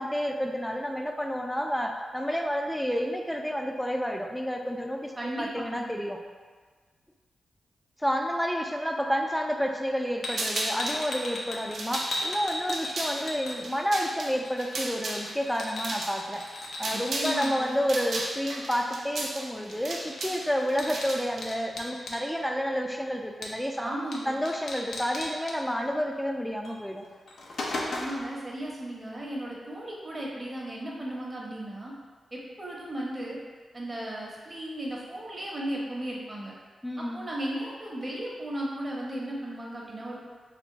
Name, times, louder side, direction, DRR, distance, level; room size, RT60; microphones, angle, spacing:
voice 1, 0.0-6.2 8.0-16.4 16.8-23.9 24.3-27.1 36.8-37.2, equal, 5° left, 2 dB, 0.4 m, -30 dB
voice 2, 5.2-5.9 16.9-17.7 23.8-24.4 27.9-31.9 32.3-33.4 33.7-36.5 37.0-40.2, right 1 dB, 30° right, -4 dB, 1.0 m, -35 dB
sound 1, 10.2-14.0 14.2-17.5 19.7-19.8 20.1-22.2 23.4-23.8 24.1-24.2 24.5-25.6 26.6-26.8 27.1-28.3, left 2 dB, 75° left, 0.5 m, -36 dB
sound 2, 10.3-11.0 11.6-17.4 17.6-21.4, right 2 dB, 75° right, 0.5 m, -35 dB
3.4 x 2.3 x 3.9 m, 1.5 s
cardioid pair, 60°, 0 cm